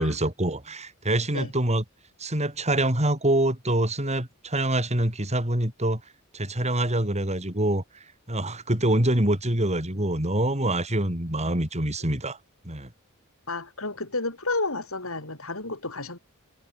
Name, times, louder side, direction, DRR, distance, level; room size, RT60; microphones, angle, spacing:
voice 1, 0.0-1.8 2.2-6.0 6.3-7.8 8.3-12.4 12.6-12.9, right 1 dB, 30° right, 6.1 m, -25 dB
voice 2, 13.5-16.2, left 3 dB, 70° left, 6.1 m, -31 dB
head